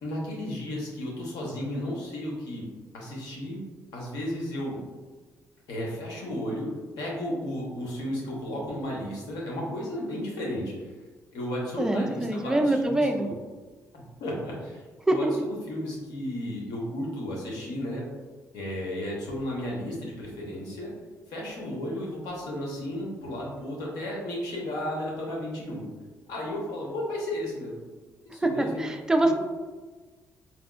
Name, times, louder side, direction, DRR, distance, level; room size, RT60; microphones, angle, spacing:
voice 1, 0.0-2.6 2.9-3.6 3.9-4.8 5.7-6.7 7.0-10.9 11.3-13.4 13.9-18.0 18.5-20.9 21.3-25.8 26.3-27.8 28.3-28.9 29.2-29.3, left 1 dB, 85° left, -3 dB, 0.9 m, -33 dB
voice 2, 11.8-13.3 15.1-15.5 28.4-29.3, right 1 dB, 10° right, 4 dB, 0.4 m, -24 dB
4.2 x 2.3 x 2.4 m, 1.3 s
cardioid pair, 90°, 6 cm